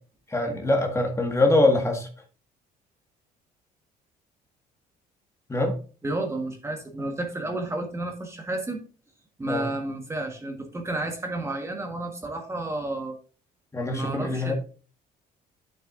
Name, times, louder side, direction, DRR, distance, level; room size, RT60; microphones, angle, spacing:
voice 1, 0.3-2.1 5.5-5.8 9.5-9.7 13.7-14.5, left 2 dB, 15° left, 1.7 m, -23 dB
voice 2, 6.0-8.8 9.4-13.1 13.9-14.5, right 2 dB, 15° right, 1.4 m, -31 dB
9.2 x 7.3 x 2.5 m
cardioid pair, 110°, 17 cm